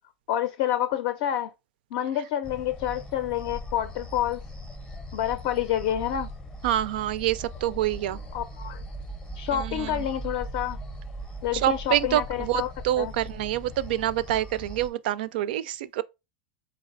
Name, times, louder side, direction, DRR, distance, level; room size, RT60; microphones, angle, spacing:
voice 1, 0.3-1.5 1.9-4.4 5.1-6.3 8.3-8.8 9.4-10.8 11.4-12.7 13.0-13.1, left 11 dB, 55° left, 0.5 m, -28 dB
sound 1, 2.4-14.9, right 1 dB, 10° left, 0.6 m, -39 dB
voice 2, 6.6-8.2 9.5-10.0 11.5-16.0, right 13 dB, 65° right, 0.4 m, -27 dB
4.1 x 3.2 x 2.6 m
supercardioid pair, 140°, 5 cm